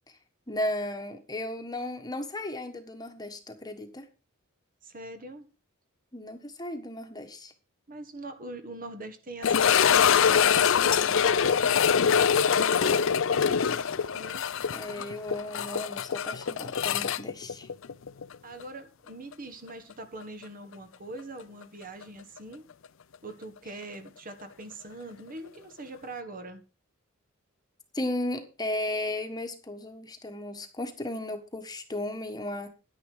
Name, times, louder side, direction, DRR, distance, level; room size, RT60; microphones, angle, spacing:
voice 1, 0.5-4.1 6.1-7.5 14.7-17.7 27.9-32.7, left 1 dB, 20° left, 1.4 m, -35 dB
voice 2, 4.8-5.5 7.9-12.3 12.6-14.5 18.4-22.7 23.2-26.6, right 2 dB, 40° right, 1.6 m, -43 dB
sound 1, 9.4-18.4 18.6-18.7 19.3-19.4 22.0-22.1, left 7 dB, 65° left, 0.6 m, -24 dB
10.5 x 10.0 x 4.7 m
head